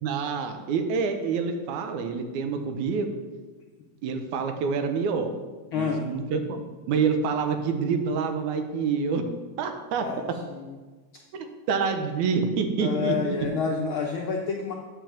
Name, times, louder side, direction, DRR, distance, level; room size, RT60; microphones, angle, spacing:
voice 1, 0.0-3.1 4.0-5.3 5.7-6.6 6.9-9.3 9.6-10.0 11.3-13.4, right 5 dB, 80° right, 6 dB, 2.2 m, -27 dB
voice 2, 5.7-6.1 10.0-10.2 10.5-10.7 12.8-14.7, left 5 dB, 75° left, 0 dB, 1.2 m, -28 dB
9.0 x 5.2 x 7.2 m, 1.3 s
omnidirectional pair, 3.4 m